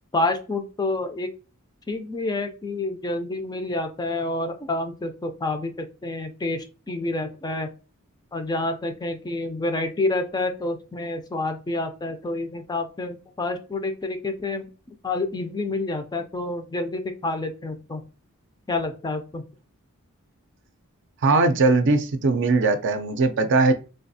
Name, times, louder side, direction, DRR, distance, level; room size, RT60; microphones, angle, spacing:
voice 1, 0.1-1.3 1.9-7.7 8.3-14.7 15.0-18.0 18.7-19.4, left 2 dB, 20° left, 7 dB, 0.4 m, -28 dB
voice 2, 21.2-23.7, right 3 dB, 55° right, 8 dB, 0.4 m, -20 dB
3.3 x 2.3 x 2.6 m, 0.34 s
head